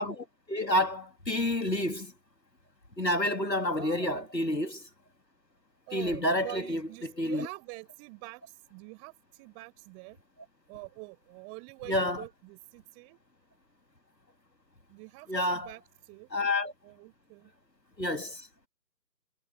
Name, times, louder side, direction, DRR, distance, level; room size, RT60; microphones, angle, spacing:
voice 1, 0.0-2.1 3.0-4.8 5.9-6.8 7.2-7.5 11.9-12.2 15.3-15.7 16.3-16.7 18.0-18.5, left 1 dB, 85° left, 2.8 m, -29 dB
voice 2, 3.7-4.3 5.9-10.2 10.7-13.2 14.9-16.3 16.8-17.5, right 40 dB or more, 10° right, 5.1 m, -46 dB
figure-of-eight pair, 155°, 49 cm